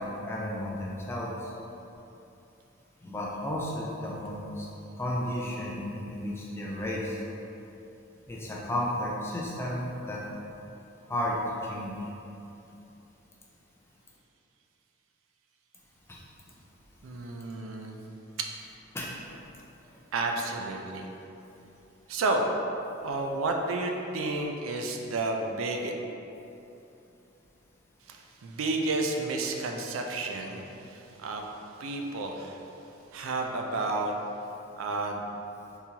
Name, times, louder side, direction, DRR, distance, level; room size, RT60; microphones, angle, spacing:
voice 1, 0.0-1.5 3.0-4.7 5.0-7.2 8.3-10.2 11.1-11.4 11.6-11.9 16.1-16.2 18.9-19.2, left 1 dB, 10° left, -4 dB, 0.3 m, -33 dB
voice 2, 17.0-18.0 18.4-18.5 20.1-21.1 22.1-22.5 23.0-25.9 28.1-31.5 31.8-32.6 33.1-34.2 34.8-35.3, right 2 dB, 75° right, 3 dB, 0.4 m, -31 dB
3.7 x 2.9 x 2.8 m, 2.9 s
head